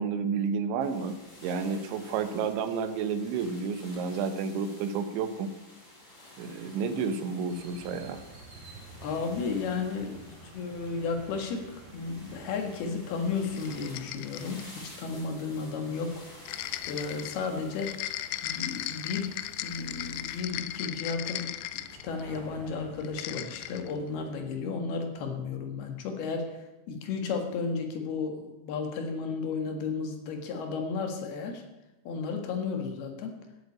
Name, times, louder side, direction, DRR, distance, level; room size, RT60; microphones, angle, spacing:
voice 1, 0.0-5.5 6.4-8.2, right 5 dB, 80° right, 9 dB, 3.3 m, -31 dB
sound 1, 0.8-20.4, left 1 dB, 25° left, 3.7 m, -52 dB
sound 2, 7.5-24.3, right 1 dB, 40° right, 3.3 m, -52 dB
voice 2, 9.0-16.3 16.9-17.9 18.4-19.4 19.6-21.5 21.9-31.6 32.1-33.4, left 4 dB, 65° left, 4 dB, 3.4 m, -33 dB
sound 3, 13.4-14.7 16.5-22.4 23.0-23.9, left 14 dB, 80° left, 2.8 m, -37 dB
15.5 x 7.7 x 8.5 m, 1.0 s
omnidirectional pair, 5.4 m